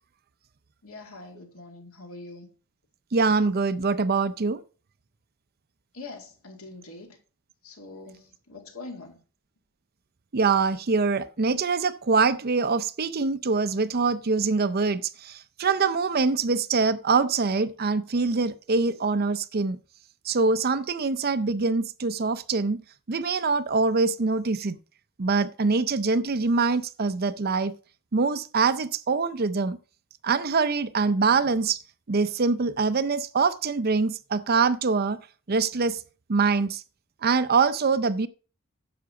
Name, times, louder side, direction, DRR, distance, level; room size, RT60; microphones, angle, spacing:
voice 1, 0.8-2.5 5.9-7.2 7.6-9.2, left 3 dB, 85° left, 2.4 m, -43 dB
voice 2, 3.1-4.6 10.3-19.8 20.2-22.8 23.1-24.8 25.2-27.7 28.1-29.8 30.2-31.8 32.1-35.2 35.5-36.0 36.3-36.8 37.2-38.3, right 4 dB, 45° right, 0.6 m, -24 dB
10.0 x 4.8 x 6.9 m
head